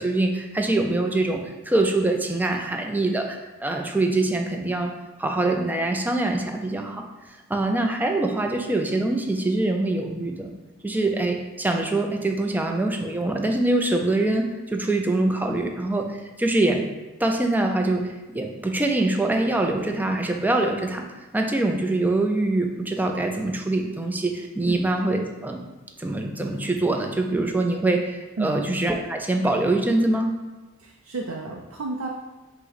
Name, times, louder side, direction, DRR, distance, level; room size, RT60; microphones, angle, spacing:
voice 1, 0.0-4.9 5.2-7.0 7.5-10.5 10.8-16.8 17.2-18.1 18.3-21.0 21.3-25.6 26.0-30.4, right 2 dB, 10° right, 3 dB, 0.3 m, -24 dB
voice 2, 30.8-32.1, right 3 dB, 85° right, 1 dB, 0.4 m, -31 dB
5.3 x 2.1 x 4.0 m, 1.1 s
head